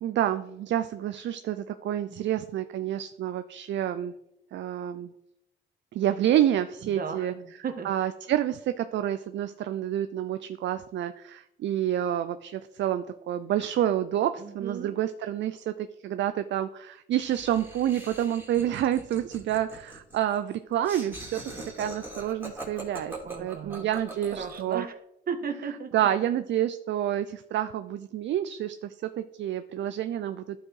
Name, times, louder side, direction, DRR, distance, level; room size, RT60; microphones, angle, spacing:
voice 1, 0.0-4.1 4.5-5.1 5.9-7.3 7.8-21.4 21.8-23.1 23.4-24.8 25.9-30.6, right 11 dB, 65° right, 10 dB, 0.5 m, -28 dB
voice 2, 6.8-8.1 14.4-14.9 23.2-24.0 24.3-24.9 25.3-25.9, right 6 dB, 50° right, 6 dB, 1.4 m, -36 dB
Laughter, 17.2-24.7, right 2 dB, 10° right, 2.5 m, -42 dB
11.5 x 4.9 x 4.7 m, 0.80 s
cardioid pair, 90°, 20 cm